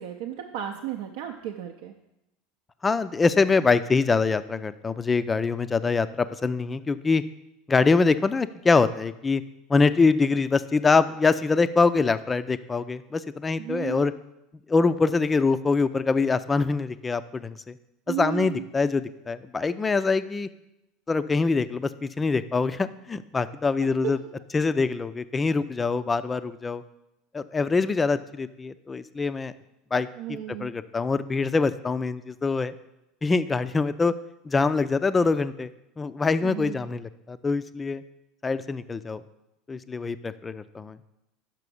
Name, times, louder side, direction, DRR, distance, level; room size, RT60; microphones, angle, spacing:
voice 1, 0.0-1.9 13.6-14.1 18.1-18.6 23.8-24.1 30.2-30.7 36.4-36.9, right 11 dB, 60° right, 3 dB, 0.6 m, -34 dB
voice 2, 2.8-7.2 7.7-9.4 9.7-14.1 14.7-17.7 18.1-20.5 21.1-24.2 24.5-26.8 27.3-29.5 29.9-30.1 30.6-32.7 33.2-34.1 34.5-35.7 36.0-38.0 38.4-39.2 39.7-41.0, left 4 dB, 20° left, 13 dB, 0.4 m, -24 dB
6.0 x 5.7 x 6.9 m, 0.91 s
figure-of-eight pair, 75°, 0 cm